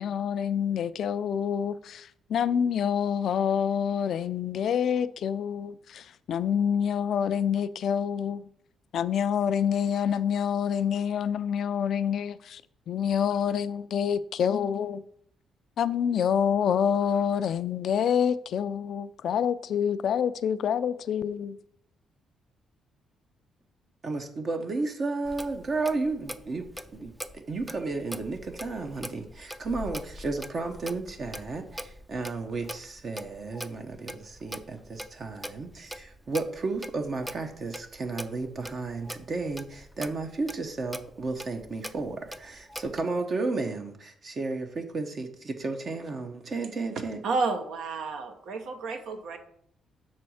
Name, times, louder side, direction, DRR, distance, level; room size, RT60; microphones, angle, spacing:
voice 1, 0.0-8.4 8.9-12.6 12.9-15.0 15.8-21.6, left 8 dB, 65° left, 0.4 m, -27 dB
voice 2, 24.0-47.2, right 3 dB, 45° right, 0.9 m, -33 dB
Clock, 25.2-43.0, equal, 5° right, 0.4 m, -43 dB
voice 3, 47.2-49.4, right 4 dB, 75° right, 1.0 m, -31 dB
6.1 x 4.3 x 6.3 m
cardioid pair, 90°, 0 cm